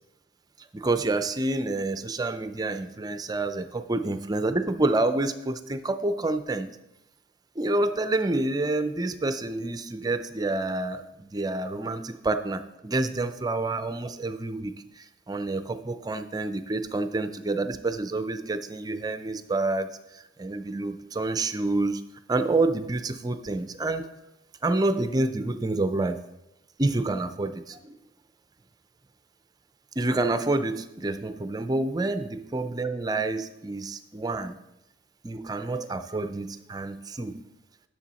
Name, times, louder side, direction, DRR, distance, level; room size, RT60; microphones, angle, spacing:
voice 1, 0.7-6.7 7.6-22.0 22.3-24.1 24.6-26.2 26.8-27.9 30.0-34.6 35.2-37.4, right 2 dB, 20° right, 10 dB, 0.4 m, -28 dB
10.0 x 6.9 x 4.1 m, 0.89 s
head